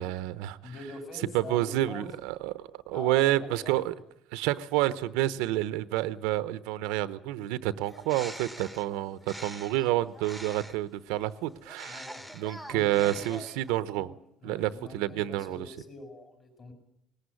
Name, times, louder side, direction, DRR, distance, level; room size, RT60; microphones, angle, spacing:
voice 1, 0.0-0.6 1.3-3.9 4.3-12.1 12.3-14.1 14.4-15.7, right 15 dB, 90° right, 15 dB, 0.9 m, -29 dB
voice 2, 0.6-2.1 2.9-3.7 11.4-11.5 11.9-12.3 12.7-13.5 13.9-14.1 14.4-16.7, left 3 dB, 35° left, 5 dB, 5.7 m, -44 dB
Bird, 7.8-10.9 11.6-13.8, equal, 5° left, 1.3 m, -45 dB
19.0 x 18.0 x 9.7 m, 0.78 s
cardioid pair, 145°, 0 cm